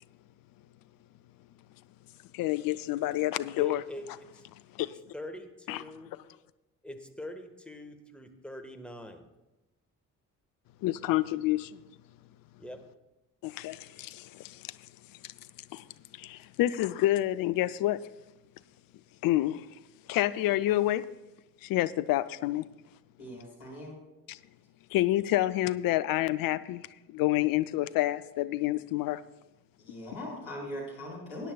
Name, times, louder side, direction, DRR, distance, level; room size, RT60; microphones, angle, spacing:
voice 1, 2.3-3.8 4.7-5.0 5.7-5.8 6.1-6.2 10.8-11.8 13.4-14.8 15.2-15.3 15.7-15.8 16.1-18.0 19.2-19.7 20.1-21.1 21.6-22.6 24.3-24.4 24.9-29.2, left 15 dB, 50° left, 0.5 m, -28 dB
voice 2, 3.6-4.0 4.3-4.4 5.1-6.1 6.8-9.3 12.6-12.8, left 1 dB, ahead, 1.4 m, -43 dB
voice 3, 23.2-24.0 29.9-31.5, left 1 dB, 65° left, 4.2 m, -40 dB
19.5 x 10.0 x 2.3 m
figure-of-eight pair, 45°, 45 cm